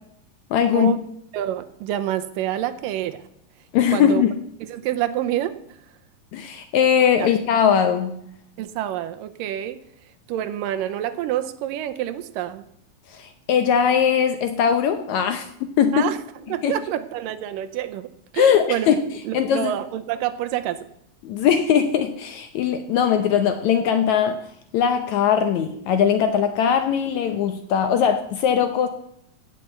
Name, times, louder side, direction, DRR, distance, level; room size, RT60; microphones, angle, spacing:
voice 1, 0.5-0.9 3.7-4.3 6.3-8.2 13.1-16.1 16.6-16.7 18.4-19.0 19.3-19.7 21.2-24.4 24.7-28.9, left 8 dB, 75° left, 8 dB, 1.8 m, -20 dB
voice 2, 1.3-3.2 3.9-4.2 4.6-5.6 7.2-7.3 8.6-9.8 10.3-12.7 15.9-16.2 16.5-18.9 19.2-20.8, right 12 dB, 80° right, 10 dB, 2.3 m, -27 dB
16.5 x 5.6 x 8.1 m, 0.73 s
omnidirectional pair, 4.0 m